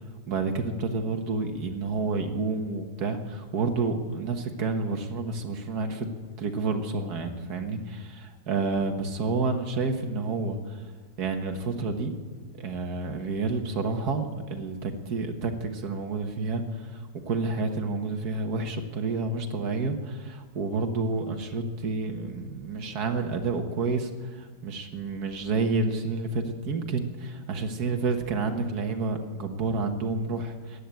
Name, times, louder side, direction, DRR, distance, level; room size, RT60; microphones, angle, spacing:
voice 1, 0.3-6.1 6.4-10.8 11.2-12.1 12.6-30.8, right 3 dB, 65° right, 6 dB, 1.9 m, -29 dB
15.5 x 10.0 x 9.1 m, 1.5 s
omnidirectional pair, 1.9 m